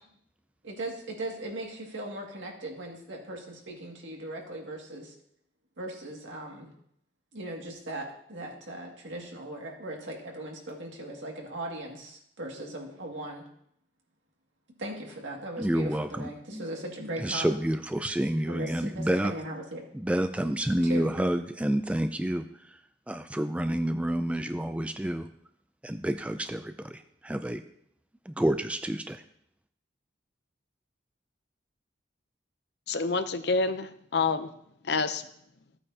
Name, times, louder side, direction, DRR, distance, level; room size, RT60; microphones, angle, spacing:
voice 1, 0.6-5.1 5.8-6.7 7.3-13.5 14.8-17.5 18.5-19.8 20.9-21.3, right 1 dB, 85° right, 0 dB, 2.2 m, -38 dB
voice 2, 15.6-16.6 17.2-19.3 19.9-22.8 23.1-25.3 25.8-27.6 28.3-29.2, right 1 dB, 5° right, 8 dB, 0.3 m, -29 dB
voice 3, 32.9-34.5 34.8-35.2, left 4 dB, 65° left, 11 dB, 0.6 m, -27 dB
14.0 x 8.7 x 2.8 m, 0.71 s
head